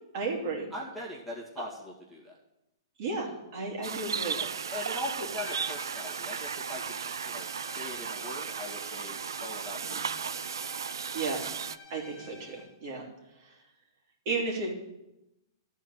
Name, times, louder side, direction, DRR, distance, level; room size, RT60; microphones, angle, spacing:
voice 1, 0.1-0.7 3.0-4.4 9.8-10.0 11.1-11.5 11.9-12.6 12.8-13.0 13.4-13.5 14.2-14.7, right 3 dB, 50° right, -2 dB, 3.0 m, -33 dB
voice 2, 0.7-2.3 4.4-10.4, left 1 dB, 5° right, -6 dB, 2.5 m, -41 dB
sound 1, 3.8-11.8, right 6 dB, 80° right, 0.3 m, -35 dB
sound 2, 5.4-12.8, left 4 dB, 25° left, 3.1 m, -49 dB
13.0 x 4.6 x 8.3 m, 0.91 s
hypercardioid pair, 120°, 2 cm